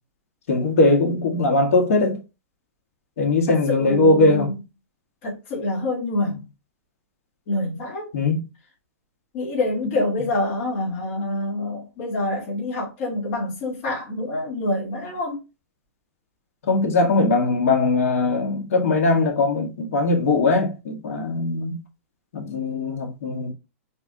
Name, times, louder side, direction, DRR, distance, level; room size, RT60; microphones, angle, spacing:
voice 1, 0.5-2.2 3.2-4.5 8.1-8.4 9.8-10.0 16.7-21.8 22.3-23.5, left 3 dB, 75° left, 1.5 m, -20 dB
voice 2, 3.5-4.5 5.2-6.4 7.5-8.1 9.3-15.4, left 2 dB, 45° left, 2.3 m, -26 dB
4.3 x 2.9 x 3.7 m
hypercardioid pair, 145°, 8 cm